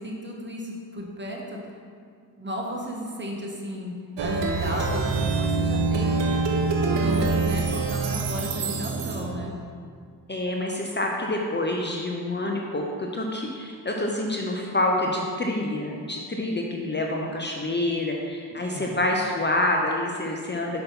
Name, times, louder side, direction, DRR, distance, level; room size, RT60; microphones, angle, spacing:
voice 1, 0.0-1.6 2.4-6.2 6.8-9.6 18.6-19.0, equal, 25° right, -1 dB, 1.5 m, -34 dB
Plucked string instrument, 4.2-9.5, right 3 dB, 80° right, 0.9 m, -25 dB
voice 2, 10.3-20.8, left 1 dB, 25° left, 0 dB, 0.8 m, -27 dB
5.9 x 5.3 x 5.4 m, 2.1 s
cardioid pair, 65°, 42 cm